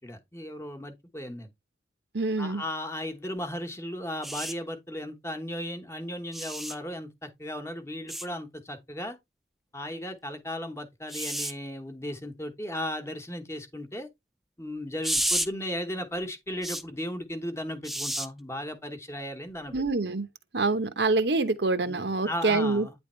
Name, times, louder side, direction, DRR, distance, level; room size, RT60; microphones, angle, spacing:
voice 1, 0.0-1.5 2.4-9.2 9.7-14.1 14.6-19.8 21.9-22.9, left 1 dB, 15° left, 1.1 m, -36 dB
voice 2, 2.1-2.6 19.7-20.3 20.5-22.9, right 3 dB, 70° right, 1.0 m, -26 dB
sound 1, 4.2-4.5 6.3-6.8 8.1-8.3 11.1-11.5 15.0-15.5 16.6-16.8 17.8-18.3 19.7-19.9, right 1 dB, ahead, 0.4 m, -30 dB
9.6 x 3.5 x 4.3 m
head